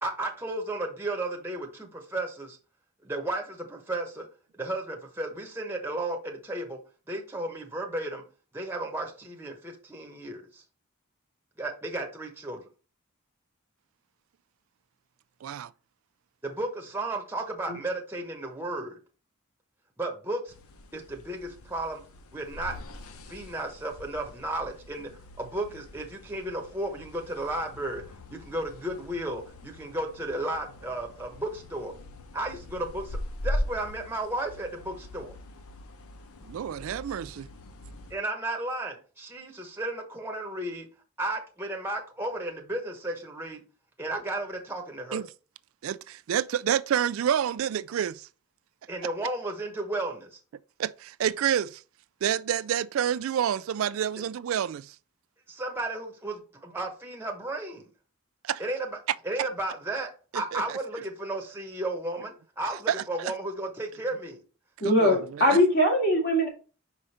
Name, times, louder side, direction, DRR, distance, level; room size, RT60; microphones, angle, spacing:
voice 1, 0.0-2.6 3.0-4.3 4.6-6.8 7.1-8.2 8.5-10.6 11.6-12.6 16.4-19.0 20.0-20.5 20.9-22.0 22.3-22.8 23.3-25.1 25.4-28.0 28.3-31.9 32.3-33.2 33.4-35.3 38.1-40.9 41.2-43.6 44.0-45.2 48.9-50.4 55.5-57.9 58.6-59.0 59.2-64.4, right 2 dB, 10° right, 1.0 m, -34 dB
voice 2, 15.4-15.7 36.5-37.5 45.1-45.3 45.8-48.3 50.8-51.8 52.2-55.0 58.4-58.6 60.3-60.8 62.9-63.3 64.8-65.6, right 9 dB, 70° right, 0.3 m, -29 dB
sound 1, 20.5-38.2, left 1 dB, 90° left, 0.8 m, -41 dB
voice 3, 64.8-66.5, equal, 55° left, 2.4 m, -21 dB
5.3 x 5.0 x 4.2 m
head